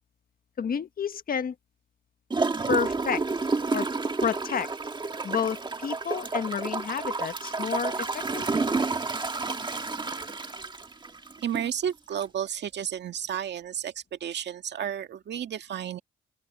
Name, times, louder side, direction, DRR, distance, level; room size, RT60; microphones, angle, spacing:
voice 1, 0.6-1.5 2.7-3.2 3.7-3.9 4.2-4.7 5.2-8.6, left 7 dB, 45° left, 1.4 m, -30 dB
Gurgling / Toilet flush, 2.3-11.7 12.2-12.3, right 3 dB, 25° right, 1.6 m, -30 dB
voice 2, 11.4-16.0, right 9 dB, 60° right, 1.9 m, -32 dB
open air
cardioid pair, 90°, 20 cm